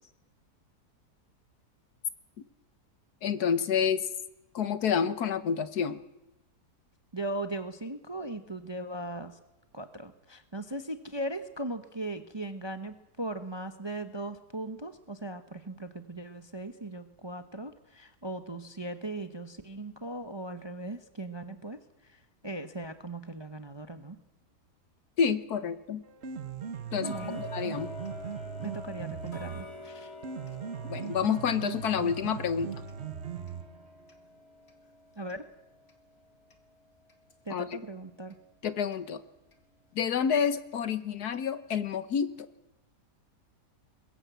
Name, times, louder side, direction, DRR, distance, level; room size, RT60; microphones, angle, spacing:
voice 1, 3.2-4.1 4.5-6.0 25.2-26.0 26.9-27.9 30.8-32.7 37.5-37.6 38.6-39.2 39.9-42.3, left 7 dB, 70° left, 13 dB, 1.5 m, -29 dB
voice 2, 7.1-9.4 9.7-24.2 27.0-27.4 28.6-30.1 35.2-35.5 37.4-38.4, right 1 dB, 20° right, 9 dB, 0.8 m, -38 dB
Piano, 26.0-34.0, right 7 dB, 45° right, 1.2 m, -39 dB
Tick-tock, 27.0-37.9 38.3-38.4 38.9-39.0 39.5-39.6 40.1-40.2 40.7-40.8 41.3-41.4 41.9-42.0, left 2 dB, 40° left, 2.1 m, -47 dB
21.5 x 16.5 x 8.2 m, 0.96 s
omnidirectional pair, 1.8 m